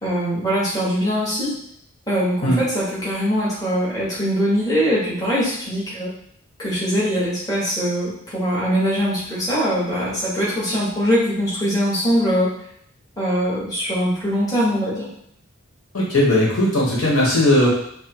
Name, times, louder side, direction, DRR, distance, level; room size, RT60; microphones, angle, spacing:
voice 1, 0.0-1.5 2.1-6.1 6.6-12.5 13.2-15.1, equal, 15° left, -8 dB, 1.3 m, -22 dB
voice 2, 15.9-17.7, left 1 dB, 70° left, -5 dB, 1.2 m, -17 dB
5.7 x 2.1 x 2.9 m, 0.69 s
head